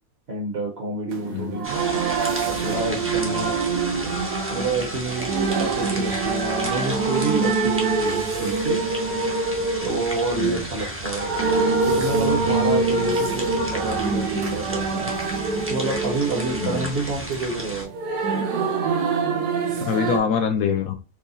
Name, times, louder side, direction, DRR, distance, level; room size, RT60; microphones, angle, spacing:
voice 1, 0.3-1.7 2.5-3.6 4.5-8.8 9.8-11.3 11.8-15.1 15.7-17.9, right 2 dB, 50° right, 1 dB, 1.0 m, -28 dB
sound 1, 1.1-20.2, right 4 dB, 80° right, 1.3 m, -25 dB
voice 2, 1.3-1.6 10.4-10.7 13.1-13.2 16.6-16.9 19.8-20.9, left 7 dB, 70° left, 4 dB, 0.9 m, -25 dB
sound 2, 1.6-17.8, equal, 15° right, 0.5 m, -34 dB
4.7 x 2.3 x 2.6 m, 0.33 s
omnidirectional pair, 1.7 m